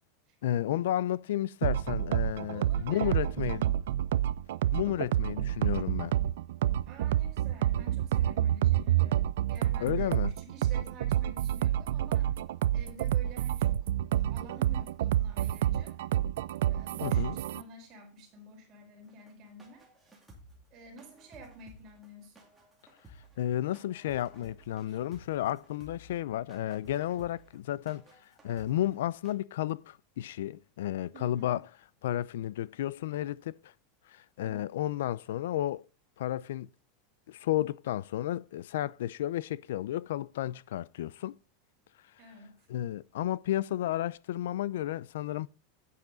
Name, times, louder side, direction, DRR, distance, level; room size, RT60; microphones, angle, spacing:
voice 1, 0.4-3.6 4.7-6.2 9.8-10.3 17.0-17.4 23.4-31.6 32.0-33.7 34.1-35.8 36.2-36.7 37.3-41.4 42.7-45.5, left 13 dB, 85° left, 0.4 m, -32 dB
sound 1, 1.6-17.6, right 12 dB, 80° right, 0.5 m, -28 dB
voice 2, 2.5-3.8 6.9-12.3 12.7-13.9 14.1-16.1 16.7-19.8 20.7-22.4 24.9-25.0 31.1-31.6 34.4-34.6 42.2-42.7, right 2 dB, 30° right, 4.2 m, -50 dB
sound 2, 19.1-29.3, equal, 5° right, 2.3 m, -56 dB
10.5 x 8.5 x 3.8 m
supercardioid pair, 170°, 0 cm